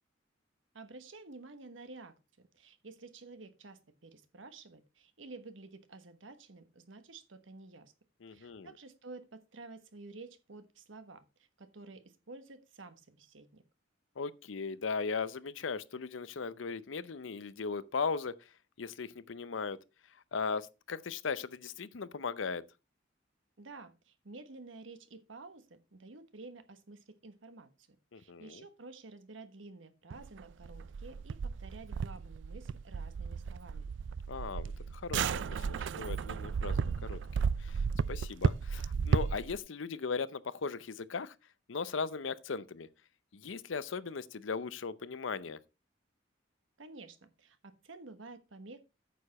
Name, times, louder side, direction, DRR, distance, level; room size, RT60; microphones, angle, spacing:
voice 1, 0.7-7.9 8.3-13.6 23.6-27.9 28.1-33.9 46.8-48.8, right 3 dB, 90° right, 1.3 m, -51 dB
voice 2, 8.2-8.7 14.2-18.4 18.8-19.8 20.3-22.6 28.1-28.6 34.3-37.2 37.6-41.3 41.7-42.9 43.3-45.6, left 5 dB, 85° left, 0.6 m, -38 dB
sound 1, 30.1-39.6, right 6 dB, 70° right, 0.4 m, -34 dB
9.2 x 6.7 x 4.1 m
head